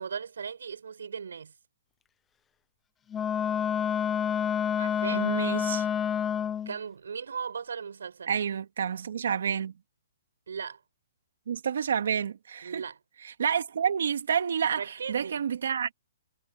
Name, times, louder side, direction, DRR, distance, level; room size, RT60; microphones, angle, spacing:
voice 1, 0.0-1.5 4.8-5.3 6.7-8.3 10.5-10.8 12.6-13.0 14.8-15.5, right 6 dB, 80° right, 7.5 m, -37 dB
Wind instrument woodwind instrument, 3.1-6.8, left 8 dB, 10° left, 0.7 m, -28 dB
voice 2, 5.1-5.9 8.3-9.7 11.5-12.8 13.4-15.9, right 7 dB, 65° right, 2.2 m, -29 dB
hypercardioid pair, 170°, 0 cm